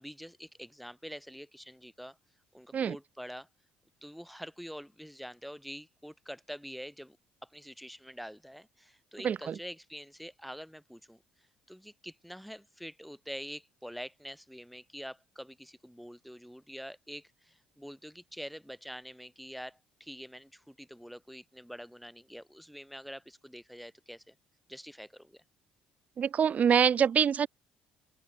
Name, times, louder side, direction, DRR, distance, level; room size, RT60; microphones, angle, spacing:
voice 1, 0.0-2.2 2.5-3.5 4.0-7.2 7.4-11.2 11.7-24.3 24.7-25.4, equal, ahead, 5.0 m, -46 dB
voice 2, 9.2-9.5 26.2-27.5, right 7 dB, 45° right, 0.5 m, -25 dB
open air
hypercardioid pair, 70°, 4 cm